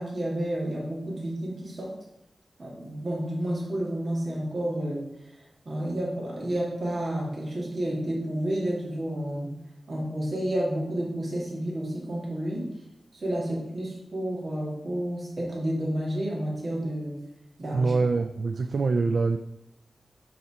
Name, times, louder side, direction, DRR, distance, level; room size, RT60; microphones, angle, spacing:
voice 1, 0.0-1.9 2.6-5.1 5.7-9.5 9.9-12.7 13.1-17.2 17.6-17.9, right 1 dB, 45° right, -3 dB, 2.2 m, -30 dB
voice 2, 17.7-19.4, right 4 dB, 60° right, 9 dB, 0.3 m, -24 dB
7.2 x 4.2 x 4.9 m, 0.83 s
wide cardioid pair, 135°, 0 cm